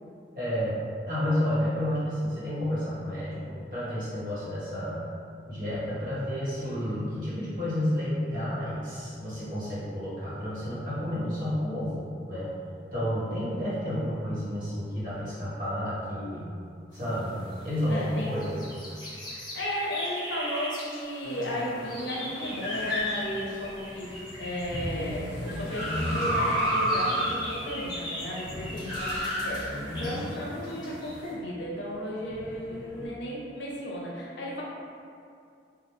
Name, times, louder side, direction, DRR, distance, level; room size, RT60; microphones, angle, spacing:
voice 1, 0.3-0.8 1.1-5.0 5.5-12.5 12.9-16.5 16.9-18.6, equal, 50° right, -11 dB, 0.9 m, -30 dB
sound 1, 16.9-31.3, equal, 25° left, 0.6 m, -41 dB
voice 2, 17.9-18.6 19.3-34.6, equal, 75° left, -4 dB, 0.5 m, -34 dB
sound 2, 21.2-31.2 32.2-33.1, equal, 75° right, 0.9 m, -32 dB
2.3 x 2.1 x 2.9 m, 2.4 s
head